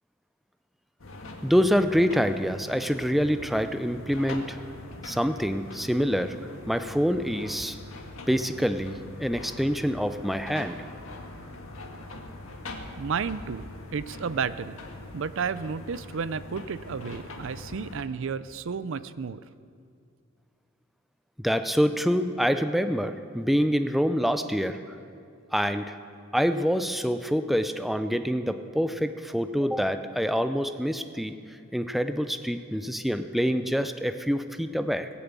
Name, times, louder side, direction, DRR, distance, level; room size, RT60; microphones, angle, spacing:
sound 1, 1.0-18.0, left 2 dB, 70° left, 1.7 m, -42 dB
voice 1, 1.4-4.6 5.0-6.4 6.7-7.8 8.3-10.8 21.4-25.0 25.5-26.0 26.3-31.3 31.7-35.1, equal, ahead, 9 dB, 0.4 m, -26 dB
voice 2, 13.0-13.6 13.9-14.8 15.1-19.4, right 6 dB, 60° right, 15 dB, 0.4 m, -32 dB
19.5 x 7.0 x 8.2 m, 2.4 s
head